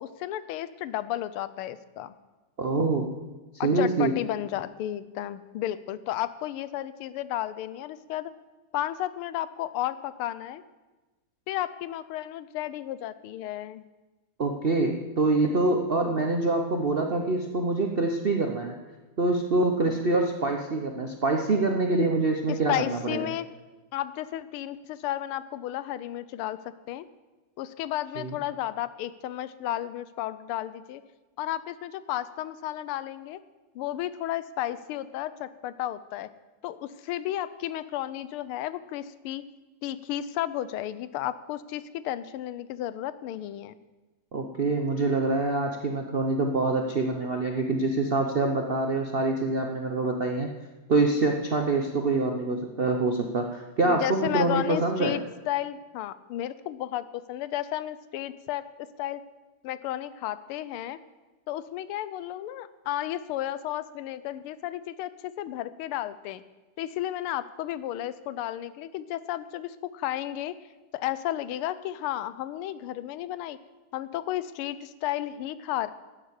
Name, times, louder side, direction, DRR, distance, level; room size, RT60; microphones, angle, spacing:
voice 1, 0.0-2.1 3.6-8.3 8.7-10.6 11.5-13.8 22.5-23.5 23.9-26.6 26.9-27.0 27.6-31.0 31.4-33.4 33.7-36.3 36.6-39.4 39.8-43.7 53.9-59.2 59.6-61.0 61.5-66.4 66.8-70.5 70.9-73.6 73.9-75.9, left 13 dB, 85° left, 15 dB, 1.5 m, -33 dB
voice 2, 2.6-3.1 3.6-4.1 14.4-18.8 19.2-23.3 28.2-28.4 44.3-50.5 50.9-55.2, right 3 dB, 60° right, 3 dB, 0.6 m, -25 dB
11.5 x 7.8 x 8.1 m, 1.2 s
omnidirectional pair, 2.4 m